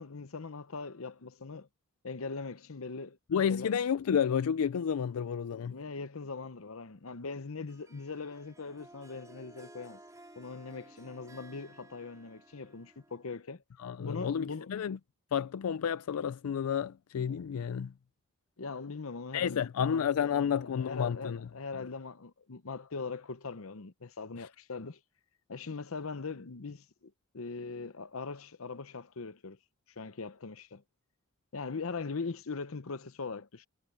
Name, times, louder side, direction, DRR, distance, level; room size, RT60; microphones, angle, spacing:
voice 1, 0.0-1.7 2.0-3.2 3.5-3.7 5.7-10.0 10.4-13.6 14.0-14.7 18.6-25.0 25.5-29.6 30.0-30.8 31.5-33.7, left 4 dB, 70° left, 0.8 m, -41 dB
voice 2, 3.3-5.7 13.8-15.0 15.3-17.9 19.3-21.4 24.4-24.5, left 7 dB, 85° left, 0.4 m, -31 dB
Harp, 7.7-13.5, right 1 dB, 15° right, 3.6 m, -56 dB
head